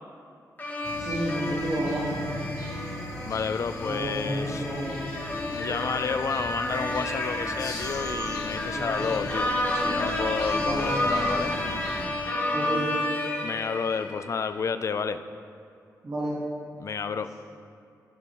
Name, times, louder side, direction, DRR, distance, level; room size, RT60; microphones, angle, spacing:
sound 1, 0.6-14.3, left 1 dB, 30° left, 1.2 m, -31 dB
sound 2, 0.8-12.1, left 2 dB, 70° left, 1.2 m, -38 dB
voice 1, 1.0-2.2 3.9-5.0 8.8-8.9 10.5-11.0 12.5-12.9 16.0-16.4, right 1 dB, 40° right, -8 dB, 1.6 m, -30 dB
voice 2, 3.2-4.7 5.5-11.5 13.4-15.2 16.8-17.3, left 5 dB, 50° left, 11 dB, 0.4 m, -31 dB
14.5 x 5.3 x 3.0 m, 2.4 s
wide cardioid pair, 120°, 6 cm